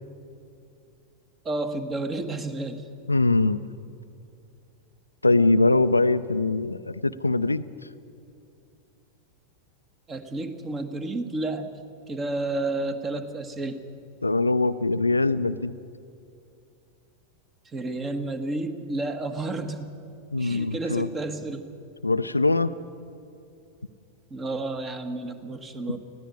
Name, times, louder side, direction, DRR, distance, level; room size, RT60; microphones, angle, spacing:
voice 1, 1.4-2.8 10.1-11.8 12.1-13.8 17.7-20.0 20.4-21.7 24.3-26.0, right 2 dB, 20° right, 9 dB, 1.6 m, -31 dB
voice 2, 3.1-3.6 5.2-7.7 14.2-15.7 20.3-21.1 22.0-22.7 25.9-26.0, left 2 dB, 80° left, 13 dB, 0.5 m, -22 dB
20.5 x 15.0 x 8.5 m, 2.6 s
figure-of-eight pair, 90°, 0 cm